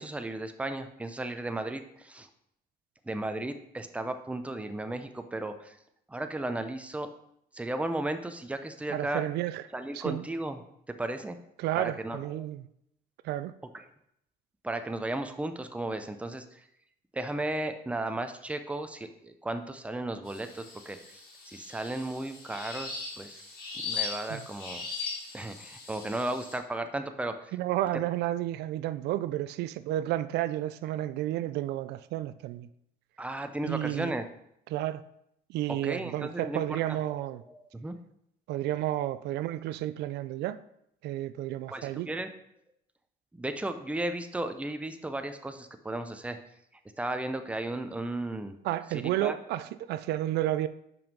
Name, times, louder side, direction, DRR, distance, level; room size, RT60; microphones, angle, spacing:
voice 1, 0.0-2.3 3.0-5.8 6.1-7.1 7.5-9.2 9.7-11.4 11.8-12.5 13.7-13.8 14.6-16.6 17.1-23.4 23.8-24.8 25.3-27.5 33.2-34.3 35.7-37.2 37.5-38.0 41.7-42.3 43.3-46.4 47.0-48.5 48.9-49.4, right 2 dB, 5° right, 0.6 m, -35 dB
voice 2, 8.9-9.6 9.9-10.2 11.6-12.6 13.2-13.5 24.3-24.4 27.5-32.7 33.6-34.1 34.7-35.0 35.5-37.4 38.5-40.6 41.0-42.1 48.6-50.7, right 14 dB, 80° right, 0.4 m, -31 dB
sound 1, 20.3-26.6, left 4 dB, 60° left, 2.4 m, -39 dB
5.7 x 5.3 x 5.4 m
cardioid pair, 110°, 17 cm